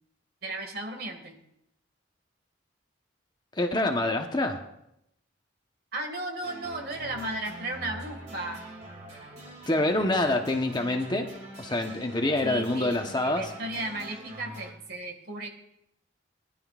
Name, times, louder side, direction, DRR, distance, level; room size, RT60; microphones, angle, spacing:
voice 1, 0.4-1.4 5.9-8.6 12.4-15.5, right 2 dB, 50° right, 3 dB, 1.9 m, -35 dB
voice 2, 3.6-4.6 9.7-11.3 11.6-13.5, left 2 dB, 20° left, 4 dB, 1.0 m, -26 dB
sound 1, 6.4-14.7, right 1 dB, 35° right, 2.4 m, -44 dB
20.0 x 11.5 x 2.5 m, 0.80 s
head